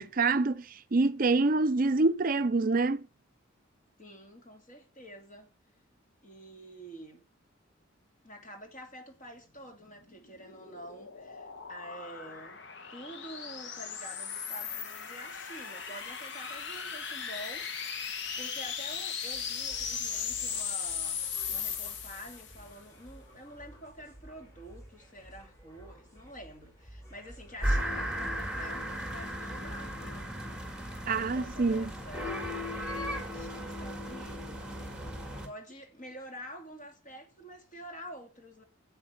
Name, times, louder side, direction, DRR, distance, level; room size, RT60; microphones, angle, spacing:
voice 1, 0.0-3.1 31.1-31.9, right 3 dB, 40° right, 0.5 m, -26 dB
voice 2, 4.0-5.5 6.2-7.2 8.2-12.6 12.9-17.7 18.1-30.4 31.1-34.8 35.4-38.6, equal, 35° left, 2.7 m, -48 dB
sound 1, 10.0-22.7, left 7 dB, 55° left, 1.1 m, -37 dB
sound 2, 19.3-31.1, equal, 15° left, 5.6 m, -54 dB
sound 3, 27.6-35.5, equal, 5° right, 1.7 m, -35 dB
9.5 x 7.9 x 7.9 m
head